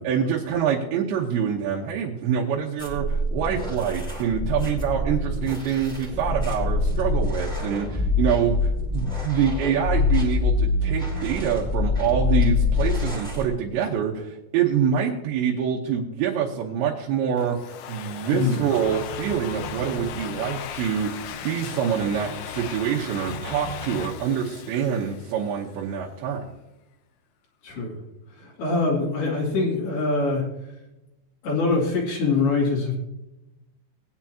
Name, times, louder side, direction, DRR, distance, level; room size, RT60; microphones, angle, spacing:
voice 1, 0.0-26.5, right 8 dB, 80° right, -3 dB, 3.3 m, -26 dB
sound 1, 2.8-13.5, left 3 dB, ahead, 1.6 m, -25 dB
Domestic sounds home sounds, 17.4-25.8, left 9 dB, 90° left, 2.0 m, -38 dB
voice 2, 18.3-18.7 27.6-28.0 28.3-30.4 31.4-32.9, left 3 dB, 65° left, -5 dB, 4.4 m, -24 dB
sound 2, 18.8-24.1, right 1 dB, 25° right, 1.5 m, -40 dB
19.5 x 9.6 x 2.9 m, 0.94 s
omnidirectional pair, 5.1 m